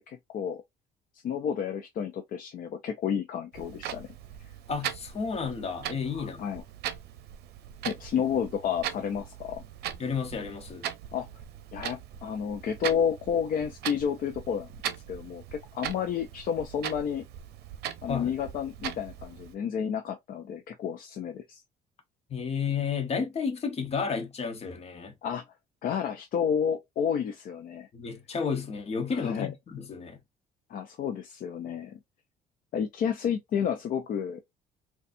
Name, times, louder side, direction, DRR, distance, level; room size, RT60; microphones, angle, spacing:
voice 1, 0.1-0.6 1.2-4.2 6.1-6.6 7.8-9.6 11.1-11.3 11.7-14.7 15.1-17.2 18.0-21.6 25.2-25.4 25.8-27.9 29.1-29.5 30.7-32.0 32.7-34.4, left 8 dB, 55° left, 0.5 m, -31 dB
Clock, 3.5-19.5, right 10 dB, 75° right, 0.6 m, -40 dB
voice 2, 4.7-6.6 10.0-10.9 18.1-18.3 22.3-25.1 27.9-30.2, left 6 dB, 40° left, 1.0 m, -32 dB
4.0 x 2.3 x 2.6 m
cardioid pair, 110°, 17 cm